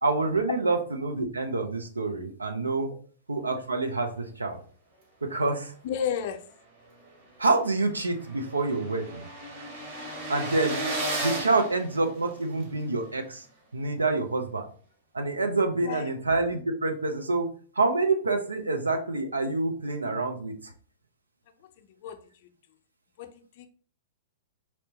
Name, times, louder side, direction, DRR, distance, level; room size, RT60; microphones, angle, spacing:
voice 1, 0.0-2.9 3.3-4.6 5.2-5.8 7.4-9.2 10.3-10.8 11.2-13.4 13.7-14.6 15.1-17.5 17.7-20.5, right 3 dB, 90° right, 5 dB, 0.6 m, -27 dB
voice 2, 5.8-6.4 15.8-16.1 22.0-22.2 23.2-23.7, left 8 dB, 50° left, 8 dB, 0.5 m, -32 dB
sound 1, 7.1-7.2 7.5-7.6 7.8-12.6, right 2 dB, 50° right, 1.7 m, -34 dB
4.3 x 2.0 x 2.8 m, 0.43 s
figure-of-eight pair, 105°, 0 cm